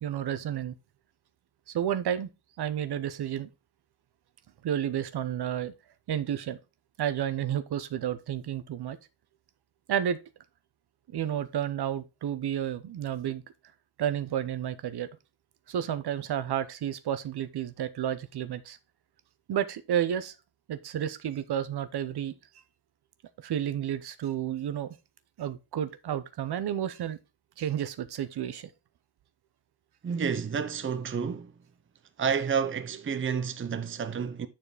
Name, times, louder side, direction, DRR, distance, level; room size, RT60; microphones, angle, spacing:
voice 1, 0.0-0.7 1.7-2.3 2.6-3.5 4.6-5.7 6.1-6.6 7.0-9.0 9.9-10.2 11.1-13.4 14.0-15.1 15.7-18.8 19.5-20.3 20.7-22.3 23.4-25.0 25.4-27.2 27.6-28.7, right 10 dB, 65° right, 0.9 m, -31 dB
voice 2, 30.0-31.5 32.2-34.5, right 6 dB, 30° right, 0.7 m, -30 dB
9.7 x 4.4 x 4.9 m
wide cardioid pair, 165°, 42 cm